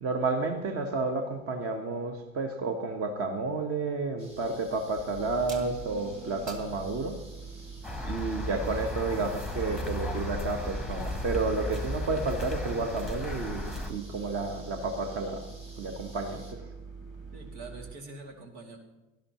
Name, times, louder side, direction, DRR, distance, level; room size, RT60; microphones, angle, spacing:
voice 1, 0.0-7.2 8.0-15.4 15.8-16.6, right 3 dB, 35° right, 4 dB, 1.4 m, -31 dB
sound 1, 4.2-16.5, right 1 dB, 85° right, 2.9 m, -52 dB
sound 2, 5.1-17.9, right 4 dB, 20° right, 2.0 m, -44 dB
sound 3, 7.8-13.9, left 1 dB, ahead, 1.2 m, -35 dB
voice 2, 17.3-18.8, right 3 dB, 70° right, 2 dB, 2.6 m, -45 dB
17.5 x 12.0 x 3.1 m, 1.0 s
hypercardioid pair, 85°, 40 cm